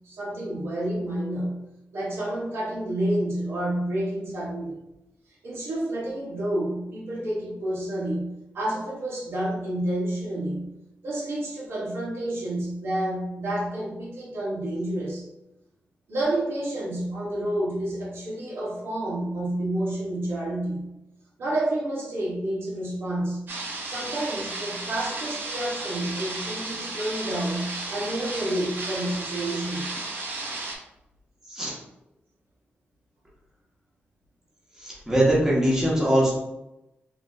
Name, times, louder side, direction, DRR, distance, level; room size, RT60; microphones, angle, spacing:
voice 1, 0.0-1.6 1.9-4.8 5.4-8.2 8.5-10.6 11.0-15.3 16.1-20.8 21.4-23.4 23.8-29.9 36.0-36.1, right 1 dB, 80° right, -5 dB, 1.1 m, -29 dB
sound 1, 23.5-30.8, right 2 dB, 65° right, 0.7 m, -34 dB
voice 2, 34.8-36.3, right 1 dB, 10° right, -6 dB, 1.0 m, -22 dB
3.3 x 2.8 x 2.6 m, 0.91 s
wide cardioid pair, 130°, 4 cm